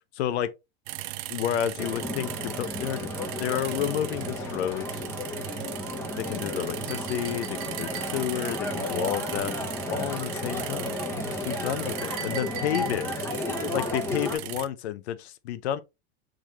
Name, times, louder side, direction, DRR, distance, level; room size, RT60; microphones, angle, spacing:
voice 1, 0.1-0.5 1.3-3.1 3.4-5.0 6.2-9.5 9.9-13.3 13.7-15.8, left 10 dB, 90° left, 0.7 m, -31 dB
sound 1, 0.9-14.7, right 16 dB, 70° right, 0.5 m, -38 dB
sound 2, 1.8-14.4, left 2 dB, 10° left, 0.8 m, -33 dB
Chink clink, 6.9-8.5 12.0-13.3, right 10 dB, 40° right, 1.4 m, -41 dB
4.9 x 3.8 x 2.9 m
supercardioid pair, 125°, 32 cm